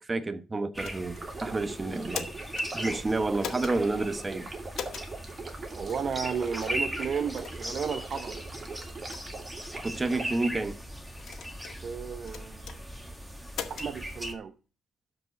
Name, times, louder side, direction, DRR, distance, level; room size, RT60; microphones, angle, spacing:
voice 1, 0.0-2.3 2.7-4.5 9.8-10.8, right 2 dB, 25° right, 1.0 m, -30 dB
sound 1, 0.7-14.3, equal, 5° right, 2.0 m, -39 dB
sound 2, 0.8-1.3 1.9-2.7 3.4-3.8 4.7-5.1 5.9-6.0 6.6-6.8 7.4-7.6 8.2-8.3 8.9-9.2 10.0-10.4 11.2-11.8 12.3-12.8 13.5-13.9, left 8 dB, 70° left, 1.7 m, -39 dB
Stream, 1.2-10.2, right 3 dB, 40° right, 2.6 m, -42 dB
voice 2, 5.7-8.4 11.8-12.8 13.7-14.5, right 6 dB, 55° right, 0.8 m, -33 dB
12.5 x 5.0 x 5.1 m
cardioid pair, 90°, 0 cm